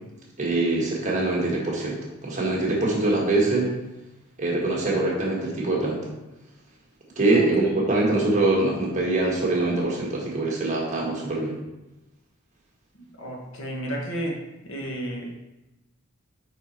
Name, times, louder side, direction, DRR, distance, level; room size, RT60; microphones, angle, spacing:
voice 1, 0.4-3.7 4.4-6.1 7.1-11.5, right 2 dB, 35° right, -3 dB, 1.4 m, -23 dB
voice 2, 13.2-14.4 14.6-15.4, right 1 dB, 70° left, -1 dB, 1.3 m, -32 dB
5.0 x 4.5 x 4.3 m, 0.97 s
head